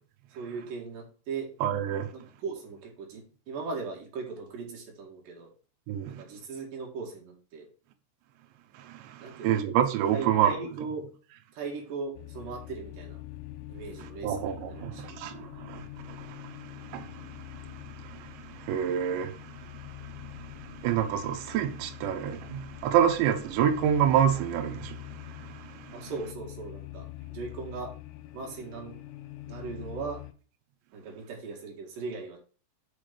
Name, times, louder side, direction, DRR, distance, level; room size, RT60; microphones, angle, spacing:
voice 1, 0.4-1.5 2.1-5.5 6.1-7.7 9.2-9.6 10.1-11.1 11.5-13.2 13.7-15.2 25.9-27.1 27.3-27.9 28.3-29.0 29.5-30.2 30.9-32.4, right 4 dB, 55° right, 2.8 m, -38 dB
voice 2, 1.6-2.1 5.9-6.2 8.8-10.6 14.0-26.1, right 9 dB, 75° right, 2.9 m, -29 dB
sound 1, 12.2-30.3, left 16 dB, 90° left, 3.4 m, -45 dB
6.9 x 6.3 x 5.1 m
omnidirectional pair, 5.9 m